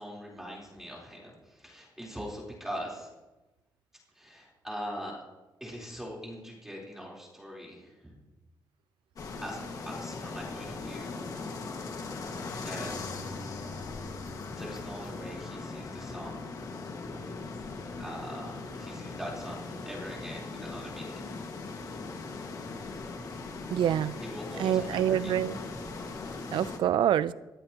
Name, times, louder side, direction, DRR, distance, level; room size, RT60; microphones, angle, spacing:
voice 1, 0.0-3.1 4.1-5.2 5.6-8.1 9.4-11.3 12.6-13.2 14.5-16.5 17.7-21.3 24.2-25.4, equal, 5° right, 3.9 m, -42 dB
sound 1, 9.2-26.8, left 3 dB, 45° left, 1.8 m, -39 dB
voice 2, 23.7-24.1 24.6-25.6 26.5-27.3, right 10 dB, 85° right, 0.5 m, -26 dB
21.5 x 14.5 x 3.0 m
wide cardioid pair, 180°, 8 cm